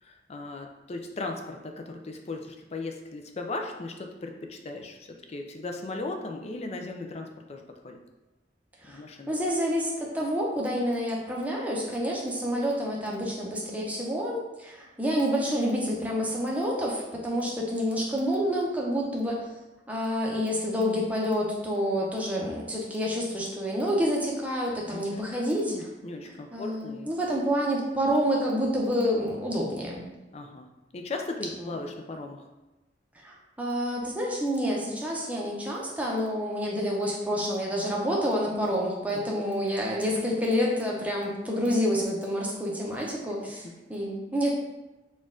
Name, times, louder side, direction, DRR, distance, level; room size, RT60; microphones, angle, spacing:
voice 1, 0.0-8.0 8.8-9.3 24.9-27.1 30.3-32.4 39.1-39.4 43.4-43.7, left 2 dB, 35° left, 3 dB, 0.4 m, -37 dB
voice 2, 9.3-19.5 19.9-25.7 26.5-30.0 33.2-43.6 43.9-44.5, equal, 10° right, -3 dB, 0.7 m, -28 dB
4.3 x 2.4 x 3.7 m, 1.1 s
head